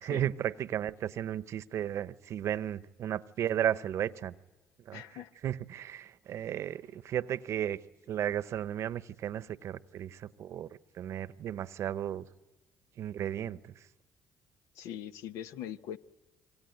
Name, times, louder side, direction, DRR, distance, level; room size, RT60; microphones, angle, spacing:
voice 1, 0.0-4.3 4.9-5.0 5.4-7.8 8.1-10.7 11.0-12.3 13.0-13.6, right 10 dB, 65° right, 15 dB, 0.9 m, -34 dB
voice 2, 4.9-5.3 14.7-16.0, left 10 dB, 80° left, 11 dB, 0.9 m, -41 dB
26.5 x 23.5 x 9.2 m, 1.2 s
supercardioid pair, 65°, 5 cm